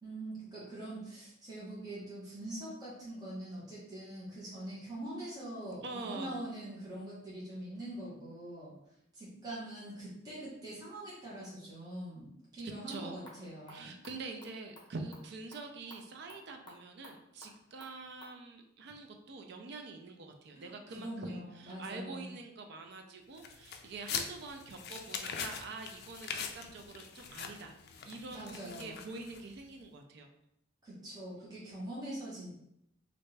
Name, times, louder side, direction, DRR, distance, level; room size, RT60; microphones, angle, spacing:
voice 1, 0.0-8.7 9.1-13.9 20.5-22.3 28.3-29.0 30.8-32.6, right 1 dB, 20° right, -9 dB, 1.1 m, -43 dB
voice 2, 5.8-6.3 12.6-13.2 13.7-30.3, right 3 dB, 65° right, 4 dB, 0.4 m, -45 dB
sound 1, 12.7-18.4, left 1 dB, 25° left, 0.9 m, -58 dB
sound 2, 23.4-29.6, left 6 dB, 55° left, 0.3 m, -42 dB
3.2 x 2.6 x 3.2 m, 0.78 s
head